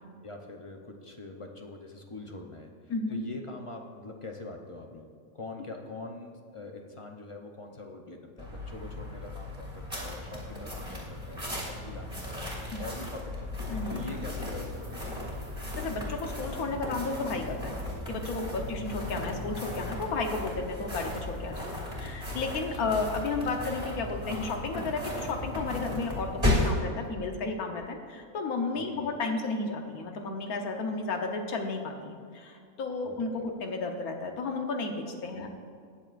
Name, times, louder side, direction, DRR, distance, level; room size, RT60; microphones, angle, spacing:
voice 1, 0.2-5.1 5.3-13.5 13.9-15.3 22.5-23.0 28.7-29.2 33.0-33.5 35.3-35.5, left 2 dB, 35° left, 2 dB, 0.5 m, -44 dB
voice 2, 2.9-3.2 12.7-12.9 13.7-14.0 15.8-17.8 18.1-35.5, left 3 dB, 80° left, 3 dB, 1.5 m, -33 dB
sound 1, 8.4-26.8, left 1 dB, 15° right, 2.7 m, -35 dB
18.5 x 7.1 x 2.5 m, 2.3 s
omnidirectional pair, 1.6 m